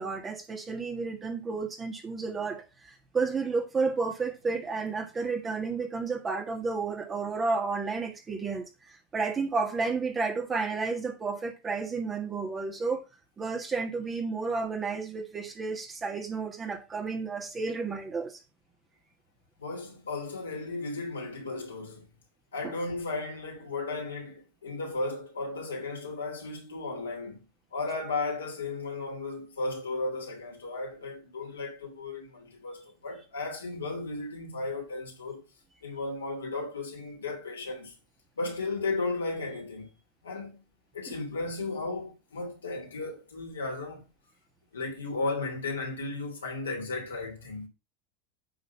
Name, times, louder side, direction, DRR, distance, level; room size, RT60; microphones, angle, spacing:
voice 1, 0.0-13.0 13.4-18.4 22.6-22.8 41.1-41.2, right 4 dB, 25° right, 1.8 m, -32 dB
voice 2, 19.6-22.1 22.5-27.4 27.7-35.4 35.8-37.9 38.4-39.9 40.2-40.6 40.9-44.1 44.7-47.7, left 3 dB, 85° left, 3.0 m, -35 dB
8.8 x 4.0 x 5.6 m
hypercardioid pair, 90°, 0 cm